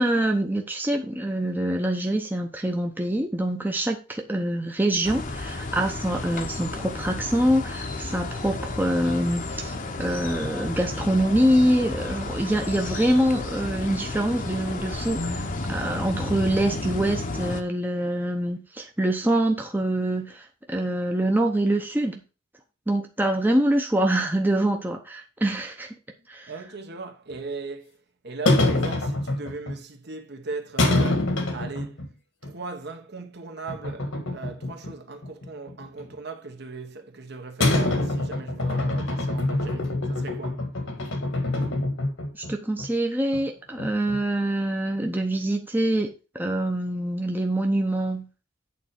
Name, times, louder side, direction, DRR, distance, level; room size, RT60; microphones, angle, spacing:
voice 1, 0.0-22.2 22.9-25.9 26.3-26.5 42.3-48.2, right 1 dB, 10° right, 0.8 m, -25 dB
sound 1, 5.0-17.6, left 2 dB, 40° left, 0.9 m, -32 dB
voice 2, 26.5-27.9 28.2-32.0 32.4-40.7, right 4 dB, 55° right, 1.3 m, -38 dB
sound 2, 27.3-27.4 28.5-29.7 30.8-32.1 32.4-32.5 33.7-34.9 35.2-36.1 37.6-42.5 42.8-42.9 43.3-43.4 43.8-44.4, left 2 dB, 70° left, 1.5 m, -25 dB
8.6 x 4.1 x 5.9 m
head